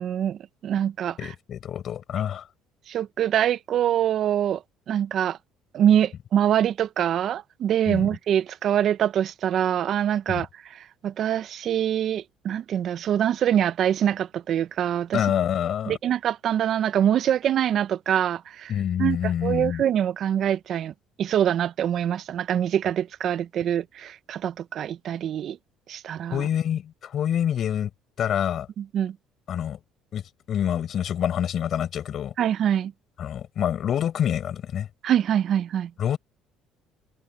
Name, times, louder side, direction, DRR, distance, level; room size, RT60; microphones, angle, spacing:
voice 1, 0.0-1.3 2.9-4.6 4.9-5.4 5.7-15.2 15.9-18.7 19.0-20.9 21.2-25.6 25.9-26.5 28.8-29.2 32.4-32.9 35.0-35.9, right 10 dB, 55° right, 0.6 m, -24 dB
voice 2, 1.2-2.4 7.9-8.0 10.3-10.4 15.1-16.0 18.7-19.8 26.3-27.9 28.2-28.7 29.5-29.8 30.1-30.2 30.5-32.3 33.2-34.9 36.0-36.2, left 9 dB, 50° left, 5.7 m, -26 dB
cardioid pair, 100°, 0 cm